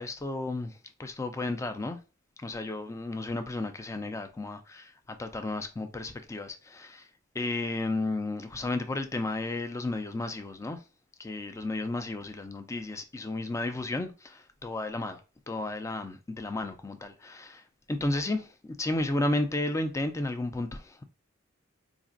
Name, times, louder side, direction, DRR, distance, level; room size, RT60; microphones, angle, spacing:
voice 1, 0.0-2.0 2.4-7.1 7.3-10.8 11.2-15.2 15.5-21.0, left 2 dB, 15° left, 0.3 m, -33 dB
3.9 x 2.5 x 2.4 m
head